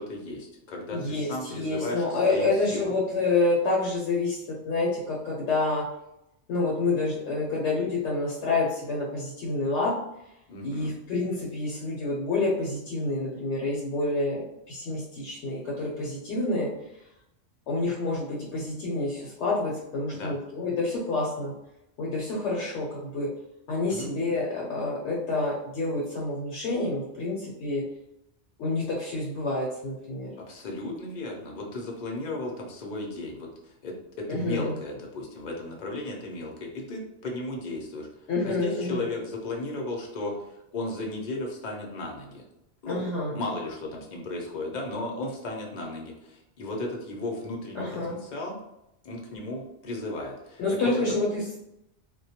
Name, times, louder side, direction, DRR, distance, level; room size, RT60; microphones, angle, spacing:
voice 1, 0.0-2.9 10.5-10.9 20.1-20.3 23.9-24.1 30.4-38.1 38.4-42.4 42.8-43.0 43.3-48.6 49.0-50.9, left 2 dB, 50° left, -1 dB, 0.5 m, -35 dB
voice 2, 0.9-5.9 6.5-10.0 10.6-16.7 17.7-21.5 22.0-23.3 23.7-27.8 28.6-30.3 34.3-34.7 38.3-39.1 42.9-43.4 47.7-48.1 49.3-49.4 50.6-51.6, left 2 dB, 75° left, -4 dB, 0.9 m, -28 dB
2.2 x 2.1 x 2.7 m, 0.85 s
omnidirectional pair, 1.2 m